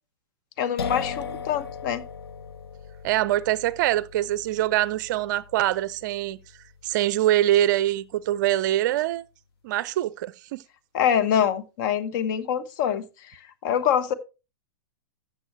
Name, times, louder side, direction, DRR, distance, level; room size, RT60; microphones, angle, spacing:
voice 1, 0.6-2.0 10.9-13.0 13.6-14.1, left 9 dB, 50° left, 1.1 m, -24 dB
sound 1, 0.8-8.3, left 6 dB, 70° left, 0.9 m, -39 dB
voice 2, 3.0-6.4 6.8-9.3 9.6-10.6, right 14 dB, 45° right, 0.5 m, -24 dB
13.5 x 7.1 x 3.1 m
figure-of-eight pair, 105°, 13 cm